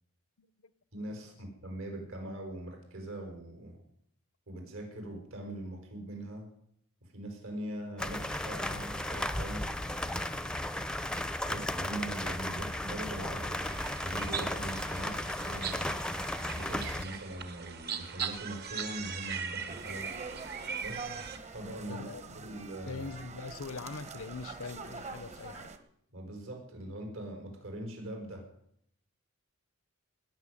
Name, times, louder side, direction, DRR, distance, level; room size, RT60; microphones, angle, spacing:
voice 1, 0.4-0.7 21.1-21.2 21.8-22.5 22.9-25.7, left 4 dB, 75° left, 0.8 m, -43 dB
voice 2, 0.9-3.8 4.5-6.5 7.0-10.3 11.4-16.0 16.5-20.1 20.8-23.1 26.1-28.4, right 1 dB, 70° right, 5.6 m, -42 dB
sound 1, 8.0-17.0, left 1 dB, 5° left, 0.7 m, -35 dB
sound 2, 13.6-21.4, right 6 dB, 50° right, 1.5 m, -40 dB
sound 3, 19.7-25.8, right 4 dB, 30° right, 1.2 m, -45 dB
19.5 x 7.0 x 9.9 m
head